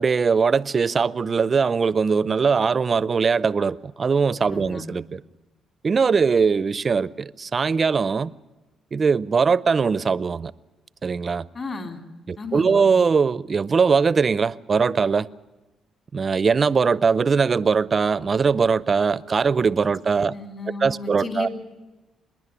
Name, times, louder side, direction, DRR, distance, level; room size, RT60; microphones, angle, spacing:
voice 1, 0.0-5.2 5.8-8.3 8.9-10.5 11.0-11.4 12.3-15.3 16.1-20.3 20.8-21.5, right 5 dB, 40° right, 19 dB, 0.6 m, -21 dB
voice 2, 4.5-4.8 11.5-12.0 12.4-12.9 20.3-21.5, left 3 dB, 45° left, 5 dB, 3.4 m, -33 dB
26.0 x 10.5 x 9.7 m, 1.2 s
cardioid pair, 90°, 0 cm